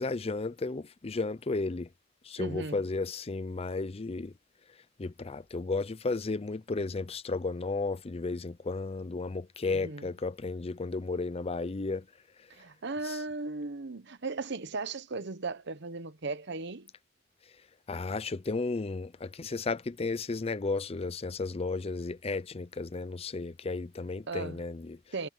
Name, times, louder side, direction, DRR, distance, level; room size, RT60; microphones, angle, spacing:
voice 1, 0.0-1.9 2.3-4.3 5.0-12.0 13.1-13.2 17.9-25.0, left 3 dB, 30° left, 0.5 m, -33 dB
voice 2, 2.4-2.8 9.7-10.1 12.5-16.9 24.3-24.6 25.1-25.3, right 3 dB, 60° right, 1.1 m, -37 dB
head